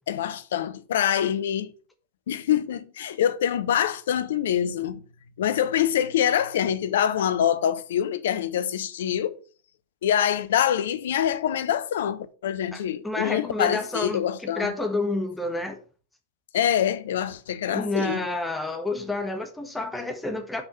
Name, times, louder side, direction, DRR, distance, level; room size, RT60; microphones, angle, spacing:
voice 1, 0.1-1.7 2.3-5.0 5.4-9.4 10.0-14.7 16.5-18.3, left 10 dB, 60° left, 0.7 m, -25 dB
voice 2, 12.7-15.8 17.7-20.6, left 2 dB, 5° left, 1.5 m, -29 dB
5.8 x 5.4 x 6.6 m
figure-of-eight pair, 90°, 0 cm